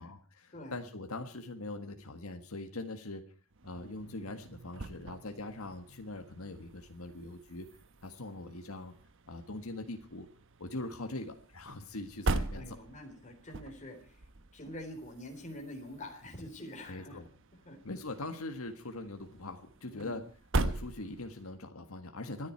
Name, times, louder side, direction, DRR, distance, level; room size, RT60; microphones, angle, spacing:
voice 1, 0.0-3.2 3.6-7.7 8.0-8.9 9.3-10.3 10.6-12.8 16.9-17.3 17.8-20.2 20.5-22.5, left 2 dB, 80° left, 5 dB, 1.7 m, -42 dB
sound 1, 3.5-21.6, right 2 dB, 65° right, 1.1 m, -41 dB
voice 2, 12.5-14.2 14.5-17.2 17.7-17.8 19.9-20.2, left 1 dB, 35° left, 3 dB, 3.8 m, -46 dB
26.5 x 10.5 x 4.6 m, 0.38 s
head